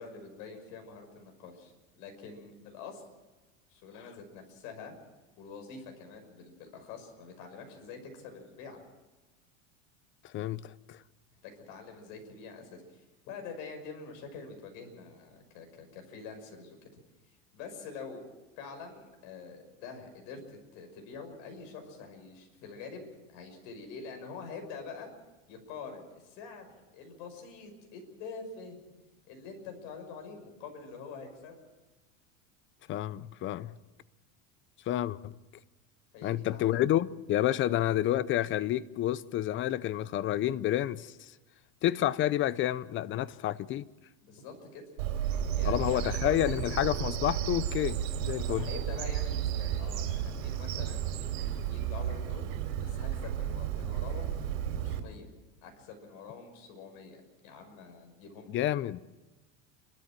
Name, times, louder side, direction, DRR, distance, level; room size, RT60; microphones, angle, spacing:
voice 1, 0.0-3.0 3.7-4.9 5.4-8.8 11.4-16.9 17.5-18.3 18.6-25.1 25.5-28.8 29.3-31.6 36.1-36.7 37.6-37.8 44.2-44.9 45.5-46.6 48.3-52.5 52.8-54.3 54.7-55.3 55.6-58.6, left 5 dB, 65° left, 6.0 m, -46 dB
voice 2, 10.2-11.0 32.9-33.8 34.9-35.4 36.2-41.3 41.8-43.9 45.6-48.7 58.5-59.0, left 13 dB, 30° left, 0.6 m, -29 dB
Bird vocalization bird call bird song, 45.0-55.0, right 10 dB, 85° right, 3.4 m, -33 dB
29.5 x 13.0 x 7.5 m
supercardioid pair, 140°, 38 cm